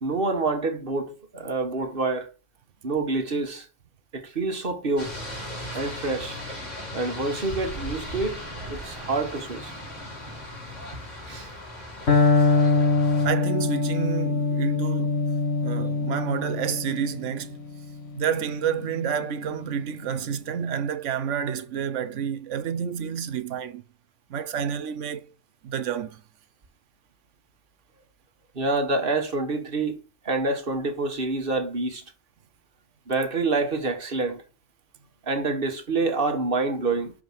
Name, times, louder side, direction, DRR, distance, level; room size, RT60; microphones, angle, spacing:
voice 1, 0.0-2.3 2.8-3.7 4.1-5.1 5.7-6.4 6.9-9.7 11.3-11.5 28.5-30.0 30.2-32.0 33.1-34.4 35.3-37.1, right 3 dB, 50° right, 1.4 m, -27 dB
sound 1, 5.0-13.3, equal, 90° left, 4.3 m, -37 dB
Electric guitar, 12.1-19.9, left 3 dB, 60° left, 1.8 m, -24 dB
voice 2, 13.2-15.2 15.6-17.6 18.1-23.8 24.3-25.3 25.6-26.2, right 8 dB, 85° right, 1.1 m, -29 dB
6.0 x 5.0 x 5.6 m
omnidirectional pair, 1.2 m